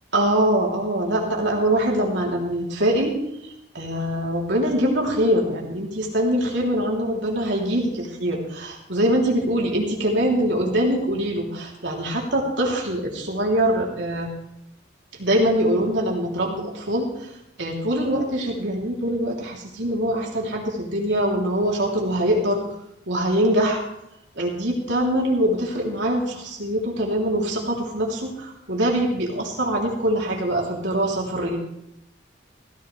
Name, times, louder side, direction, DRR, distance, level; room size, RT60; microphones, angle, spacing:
voice 1, 0.1-3.2 3.4-14.3 15.2-17.3 17.6-22.6 23.1-23.8 24.3-31.6, right 1 dB, 70° right, -2 dB, 3.4 m, -23 dB
16.0 x 15.0 x 3.4 m, 0.79 s
head